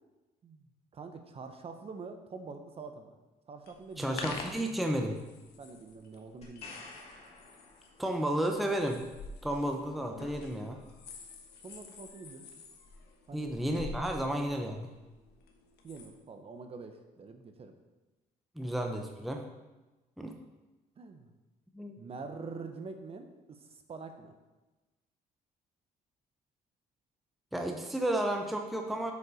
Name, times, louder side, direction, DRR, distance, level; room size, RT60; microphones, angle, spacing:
voice 1, 0.4-3.2 3.5-4.2 5.6-6.9 11.6-12.5 13.3-13.5 15.8-17.7 21.0-21.3 22.0-24.3, right 4 dB, 35° right, 6 dB, 1.0 m, -45 dB
sound 1, 3.6-16.1, left 4 dB, 75° left, 1.3 m, -48 dB
voice 2, 4.0-5.2 8.0-9.0 9.4-10.8 13.3-14.9 18.6-19.4 20.2-20.3 21.7-22.0 27.5-29.1, right 1 dB, ahead, 3 dB, 0.7 m, -32 dB
sound 2, 6.4-8.4 12.1-12.2, left 2 dB, 40° left, 2.5 m, -51 dB
8.1 x 5.3 x 5.0 m, 1.1 s
cardioid pair, 110°, 17 cm